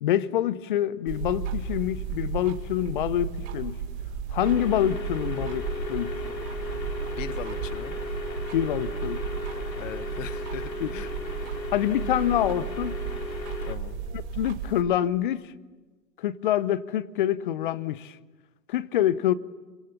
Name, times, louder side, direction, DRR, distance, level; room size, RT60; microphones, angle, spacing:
voice 1, 0.0-3.8 4.3-6.1 8.5-9.2 10.8-10.9 11.7-13.0 14.1-15.4 16.2-18.2 18.7-19.3, left 11 dB, 30° left, 0.8 m, -26 dB
sound 1, 1.1-14.8, right 6 dB, 30° right, 4.3 m, -34 dB
sound 2, 4.4-13.8, left 1 dB, 85° left, 3.6 m, -36 dB
voice 2, 7.1-7.9 9.7-11.1 12.1-12.2 13.7-14.0, left 10 dB, 50° left, 1.1 m, -39 dB
29.5 x 25.0 x 7.1 m
figure-of-eight pair, 125°, 50 cm